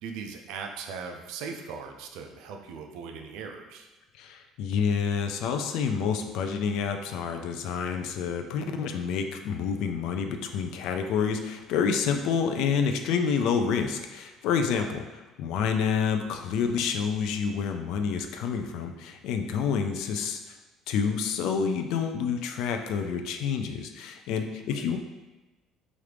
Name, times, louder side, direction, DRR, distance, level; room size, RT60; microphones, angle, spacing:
voice 1, 0.0-3.9 14.7-14.9 24.8-24.9, right 5 dB, 80° right, 4 dB, 0.4 m, -39 dB
voice 2, 4.2-15.0 15.4-20.6 20.9-25.0, left 6 dB, 65° left, 6 dB, 0.3 m, -28 dB
3.0 x 2.4 x 3.3 m, 1.1 s
cardioid pair, 160°, 0 cm